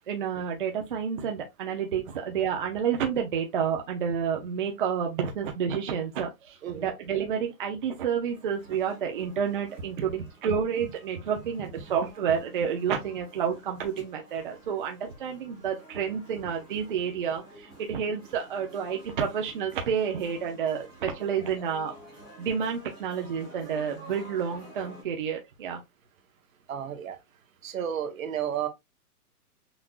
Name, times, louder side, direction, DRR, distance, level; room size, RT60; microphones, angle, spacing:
voice 1, 0.1-21.9 22.4-25.8, right 7 dB, 35° right, 0.6 m, -30 dB
sound 1, 8.3-25.0, right 1 dB, 5° left, 0.5 m, -51 dB
voice 2, 26.7-27.2 27.6-28.7, right 9 dB, 60° right, 1.1 m, -32 dB
5.9 x 2.5 x 2.4 m
hypercardioid pair, 165°, 47 cm